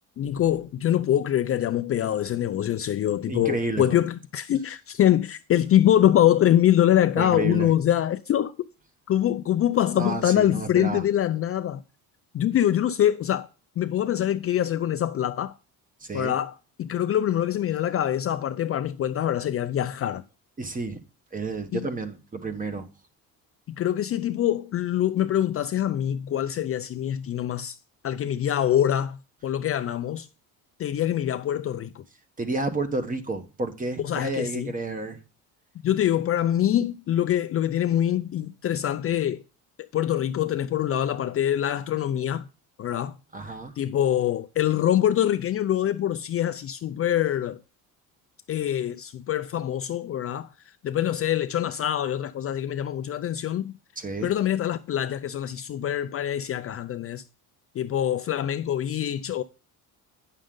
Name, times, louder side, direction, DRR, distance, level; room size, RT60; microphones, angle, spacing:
voice 1, 0.2-8.5 9.1-11.8 12.3-13.5 13.8-15.6 16.1-20.2 21.7-21.9 23.7-27.8 28.0-30.3 30.8-32.0 34.0-34.7 35.8-39.4 39.9-42.5 42.8-43.2 43.8-47.6 48.5-50.5 50.8-53.7 54.2-57.2 57.7-59.4, left 11 dB, 40° left, 0.4 m, -24 dB
voice 2, 3.3-4.0 7.2-7.7 9.9-11.0 16.0-16.3 20.6-21.0 21.3-22.9 32.4-35.2 43.3-43.8 54.0-54.3, right 3 dB, 20° right, 1.1 m, -31 dB
9.0 x 6.4 x 3.8 m
cardioid pair, 110°, 37 cm